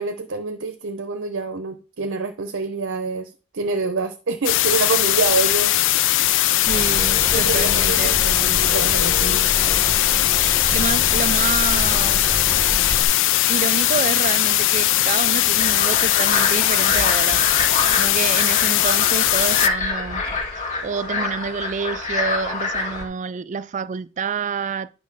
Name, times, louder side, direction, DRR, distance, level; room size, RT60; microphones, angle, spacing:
voice 1, 0.0-5.7 7.3-9.5, right 4 dB, 55° right, 0.8 m, -26 dB
sound 1, 4.4-19.7, left 14 dB, 55° left, 0.4 m, -19 dB
sound 2, 6.6-13.0, left 1 dB, 15° left, 1.3 m, -28 dB
voice 2, 6.6-8.2 10.7-12.3 13.5-20.2 20.5-24.9, right 5 dB, 35° right, 0.4 m, -28 dB
sound 3, 15.6-23.0, left 3 dB, 35° left, 1.9 m, -26 dB
9.5 x 6.1 x 4.0 m
head